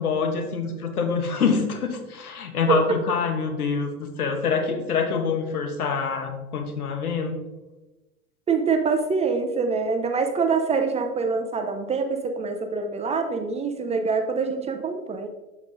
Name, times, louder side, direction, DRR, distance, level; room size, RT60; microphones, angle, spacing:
voice 1, 0.0-7.4, left 5 dB, 85° left, 6 dB, 1.0 m, -26 dB
voice 2, 8.5-15.3, right 4 dB, 15° right, 5 dB, 0.4 m, -25 dB
7.3 x 6.0 x 2.5 m, 1.1 s
hypercardioid pair, 90°, 43 cm